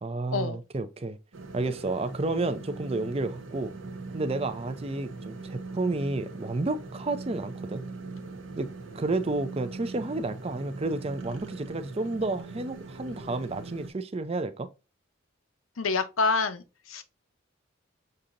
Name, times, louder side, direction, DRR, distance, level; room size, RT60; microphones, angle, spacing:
voice 1, 0.0-1.2 1.5-3.7 4.1-7.8 8.6-14.7, right 2 dB, 30° right, 0.4 m, -31 dB
sound 1, 1.3-13.9, right 3 dB, 75° right, 0.8 m, -41 dB
voice 2, 15.8-17.0, left 4 dB, 80° left, 0.7 m, -27 dB
6.6 x 2.8 x 2.5 m
head